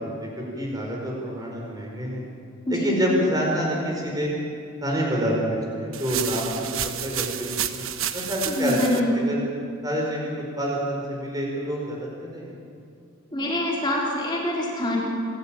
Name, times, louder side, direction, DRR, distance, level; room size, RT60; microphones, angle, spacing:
voice 1, 0.0-2.2 2.7-4.3 4.8-9.4 9.8-12.6, equal, 20° right, -2 dB, 4.6 m, -27 dB
voice 2, 2.7-3.0 8.5-9.1 13.3-15.0, left 1 dB, 20° left, -4 dB, 3.8 m, -25 dB
sound 1, 5.9-9.0, right 10 dB, 80° right, 1.2 m, -30 dB
28.0 x 13.0 x 8.8 m, 2.4 s
head